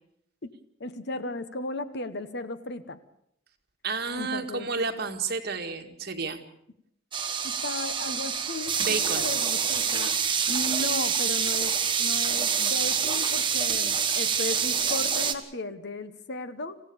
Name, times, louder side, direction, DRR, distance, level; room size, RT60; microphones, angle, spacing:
voice 1, 0.8-3.0 4.1-4.7 7.4-16.8, left 2 dB, 60° left, 12 dB, 1.2 m, -35 dB
voice 2, 3.8-6.4 8.8-9.3, right 4 dB, 55° right, 4 dB, 2.0 m, -31 dB
sound 1, 7.1-15.3, right 7 dB, 25° right, 1.5 m, -26 dB
26.0 x 15.5 x 7.1 m, 0.76 s
head